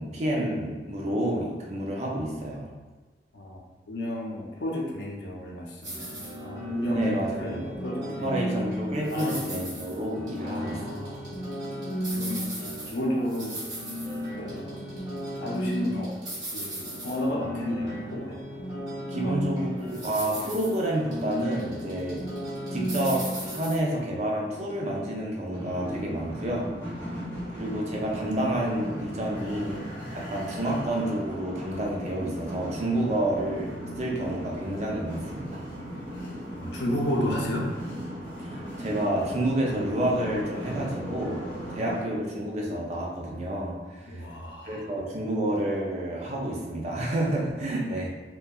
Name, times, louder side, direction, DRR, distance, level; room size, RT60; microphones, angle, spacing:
voice 1, 0.0-2.7 6.9-7.6 8.0-10.8 19.1-22.2 22.7-26.7 27.5-29.8 30.1-33.7 34.0-35.6 38.4-44.2 44.6-48.1, right 1 dB, 40° right, -2 dB, 0.4 m, -29 dB
voice 2, 3.9-7.0 7.4-8.7 9.1-9.4 10.4-11.2 12.1-12.5 12.8-13.6 14.4-15.0 15.4-16.1 16.5-18.4 19.2-19.5 36.5-37.7 44.1-44.8, left 1 dB, 75° left, -2 dB, 0.5 m, -32 dB
sound 1, 5.8-23.8, equal, 20° right, 0.9 m, -34 dB
sound 2, 25.5-42.1, equal, 15° left, 0.9 m, -38 dB
2.7 x 2.2 x 2.3 m, 1.3 s
head